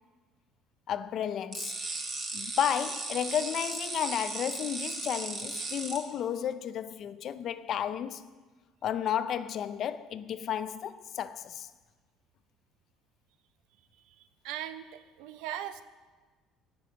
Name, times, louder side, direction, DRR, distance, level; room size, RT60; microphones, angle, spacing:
voice 1, 0.9-1.7 2.3-8.2 8.8-11.7, left 9 dB, 45° left, 0.5 m, -32 dB
sound 1, 1.5-6.0, right 3 dB, 30° right, 1.8 m, -36 dB
voice 2, 14.0-15.8, right 11 dB, 80° right, 0.7 m, -40 dB
17.5 x 6.0 x 6.3 m
cardioid pair, 160°, 0 cm